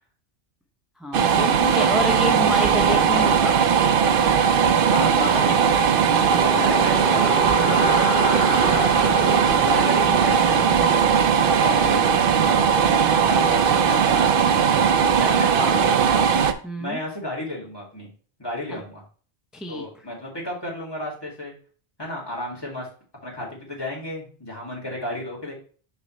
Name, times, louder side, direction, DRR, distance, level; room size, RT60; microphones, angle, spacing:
voice 1, 1.0-3.6 16.6-17.0 18.7-18.8 19.5-19.8, left 1 dB, ahead, 2 dB, 0.4 m, -28 dB
sound 1, 1.1-16.5, right 7 dB, 65° right, 0.7 m, -19 dB
voice 2, 4.8-6.0 6.2-9.4 9.7-12.1 12.4-12.7 13.2-16.3 16.8-18.1 18.4-19.0 19.7-21.5 22.0-22.9 23.2-25.5, left 1 dB, 25° left, -4 dB, 2.3 m, -33 dB
sound 2, 6.2-14.2, left 1 dB, 70° left, 2.6 m, -31 dB
6.7 x 5.3 x 3.1 m, 0.41 s
omnidirectional pair, 1.1 m